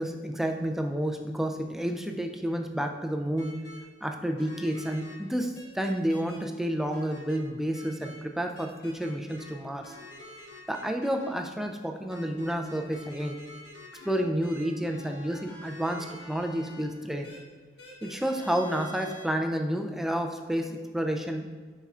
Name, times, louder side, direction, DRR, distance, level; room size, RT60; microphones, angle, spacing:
voice 1, 0.0-3.6 4.0-9.9 10.7-13.4 14.0-17.3 18.0-21.4, equal, ahead, 4 dB, 0.3 m, -30 dB
sound 1, 3.4-3.8 4.4-5.1 5.5-6.4 6.9-7.4 7.7-8.1 8.5-9.5 9.8-11.3 12.1-16.8 17.2-17.4 17.8-19.2, left 1 dB, 80° left, 1.3 m, -47 dB
7.2 x 5.6 x 2.4 m, 1.5 s
head